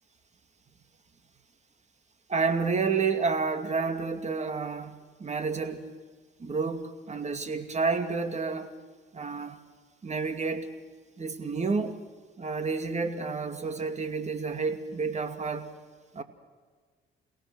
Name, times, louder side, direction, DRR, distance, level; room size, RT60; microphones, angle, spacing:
voice 1, 2.3-5.9 6.4-8.7 9.1-9.6 10.0-10.7 11.2-12.0 12.4-15.7 16.1-16.2, right 4 dB, 35° right, 8 dB, 2.4 m, -30 dB
29.0 x 17.5 x 6.3 m, 1.5 s
cardioid pair, 90°, 20 cm